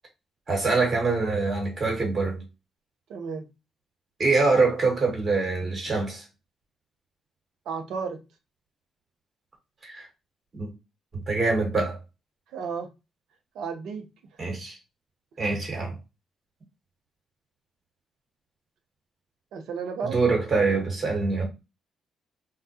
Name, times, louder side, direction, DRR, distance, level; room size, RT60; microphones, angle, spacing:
voice 1, 0.5-2.4 4.2-6.2 9.8-10.1 10.5-10.7 11.3-12.0 14.4-14.8 15.4-15.9 20.0-21.4, right 3 dB, 50° right, 1.3 m, -24 dB
voice 2, 3.1-3.4 7.7-8.2 12.5-12.9 13.5-14.1 19.5-20.2, right 5 dB, 75° right, 0.5 m, -32 dB
2.2 x 2.1 x 2.7 m
hypercardioid pair, 50°, 0 cm